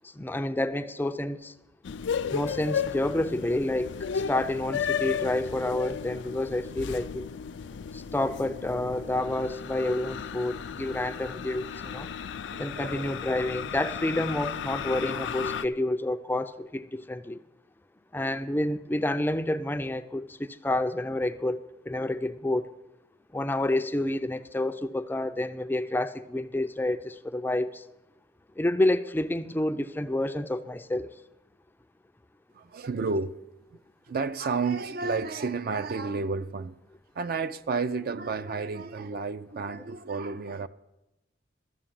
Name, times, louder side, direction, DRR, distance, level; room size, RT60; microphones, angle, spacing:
voice 1, 0.2-1.5 2.3-3.9 4.3-7.3 7.9-12.1 12.6-17.4 18.1-22.7 23.3-27.8 28.6-31.1, left 1 dB, 10° left, 0.4 m, -29 dB
sound 1, 1.9-15.7, left 7 dB, 75° left, 0.4 m, -34 dB
voice 2, 12.5-13.2 32.5-33.3 33.7-33.8 34.1-36.8 37.2-40.7, right 4 dB, 55° right, 0.5 m, -31 dB
12.5 x 7.1 x 7.5 m
head